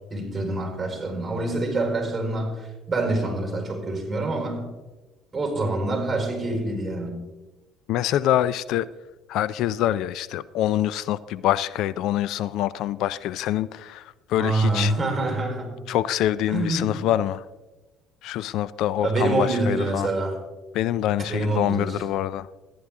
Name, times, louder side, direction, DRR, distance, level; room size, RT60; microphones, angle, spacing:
voice 1, 0.1-4.7 5.3-7.1 14.4-15.8 16.5-17.0 19.0-20.4 21.2-22.0, right 2 dB, 15° right, 1 dB, 4.4 m, -26 dB
voice 2, 7.9-8.9 9.3-14.0 14.3-14.9 15.9-17.4 18.2-20.1 20.7-22.5, left 12 dB, 70° left, 18 dB, 0.3 m, -25 dB
14.5 x 10.5 x 3.6 m, 1.1 s
cardioid pair, 110°, 0 cm